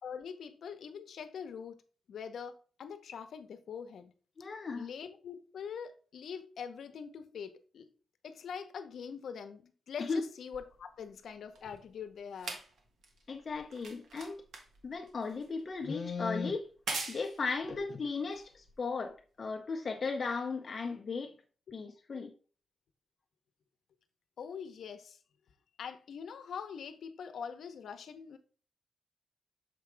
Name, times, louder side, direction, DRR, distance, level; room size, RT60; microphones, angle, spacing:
voice 1, 0.0-1.8 2.1-4.1 4.7-7.9 8.2-12.6 22.1-22.2 24.4-25.2 25.8-28.4, left 7 dB, 70° left, 0.8 m, -43 dB
voice 2, 4.4-4.9 10.0-10.2 13.3-14.4 14.8-16.7 17.1-21.3 21.7-22.3, left 4 dB, 40° left, 0.6 m, -36 dB
sound 1, 10.5-19.1 20.0-20.1, right 3 dB, 80° right, 1.4 m, -45 dB
6.7 x 4.7 x 3.3 m
wide cardioid pair, 160°, 0 cm